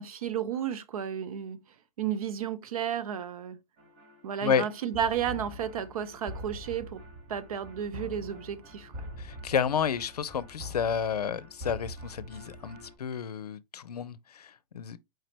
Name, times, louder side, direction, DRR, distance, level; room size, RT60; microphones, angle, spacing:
voice 1, 0.0-1.6 2.0-3.6 4.2-7.0 7.3-8.9, right 9 dB, 65° right, 0.7 m, -32 dB
sound 1, 3.8-12.9, equal, 35° right, 1.6 m, -44 dB
voice 2, 9.2-15.0, left 7 dB, 90° left, 0.5 m, -31 dB
4.7 x 2.9 x 3.1 m
hypercardioid pair, 130°, 19 cm